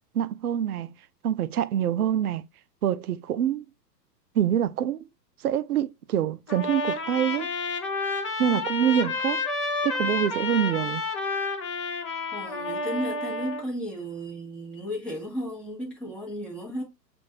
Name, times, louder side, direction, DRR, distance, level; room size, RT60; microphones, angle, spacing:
voice 1, 0.1-0.9 1.2-2.4 2.8-3.6 4.3-5.1 5.4-7.5 8.4-9.4 9.8-11.0, right 10 dB, 65° right, 0.5 m, -25 dB
Trumpet, 6.5-13.6, left 3 dB, 20° left, 0.5 m, -30 dB
voice 2, 12.3-16.8, equal, ahead, 1.0 m, -34 dB
7.3 x 2.5 x 2.7 m
figure-of-eight pair, 110°, 50 cm